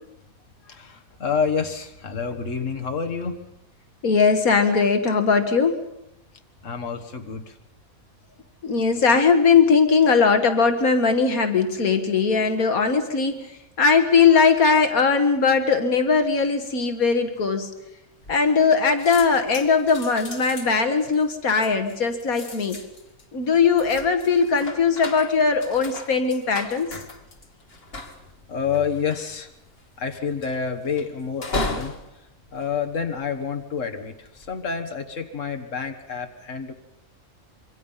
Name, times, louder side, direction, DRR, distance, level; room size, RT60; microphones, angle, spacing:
voice 1, 0.7-3.4 6.6-7.6 28.5-29.5 30.0-31.9 32.5-36.7, left 6 dB, 60° left, 5 dB, 2.0 m, -28 dB
voice 2, 4.0-5.8 8.6-13.4 13.8-17.7 18.3-22.8 23.3-26.9, left 5 dB, 80° left, 7 dB, 2.0 m, -19 dB
sound 1, 18.2-18.7 19.0-33.5 34.1-34.5, left 2 dB, 45° left, 2.1 m, -37 dB
26.5 x 24.0 x 5.7 m, 0.82 s
omnidirectional pair, 1.5 m